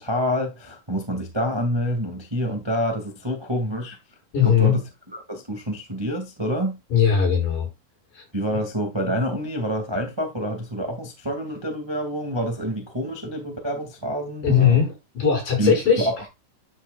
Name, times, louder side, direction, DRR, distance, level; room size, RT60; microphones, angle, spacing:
voice 1, 0.0-4.0 4.4-4.8 5.1-6.8 8.3-14.8 15.6-16.3, equal, 15° right, 0.8 m, -27 dB
voice 2, 4.3-4.8 6.9-7.7 8.1-8.2 14.4-16.1, left 7 dB, 65° left, 7.3 m, -19 dB
12.0 x 6.5 x 2.3 m
omnidirectional pair, 4.2 m